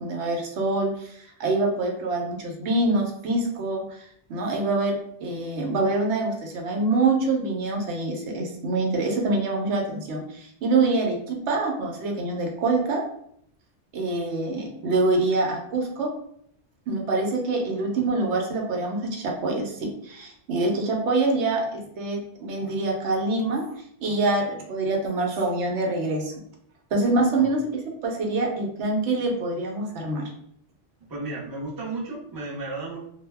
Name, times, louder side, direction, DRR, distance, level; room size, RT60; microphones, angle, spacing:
voice 1, 0.0-13.0 13.9-16.1 16.9-23.7 24.0-26.3 26.9-27.6 28.0-30.2, right 2 dB, 80° right, 1 dB, 0.9 m, -25 dB
voice 2, 31.1-33.0, right 2 dB, 25° right, -6 dB, 0.6 m, -33 dB
2.2 x 2.0 x 3.3 m, 0.69 s
omnidirectional pair, 1.2 m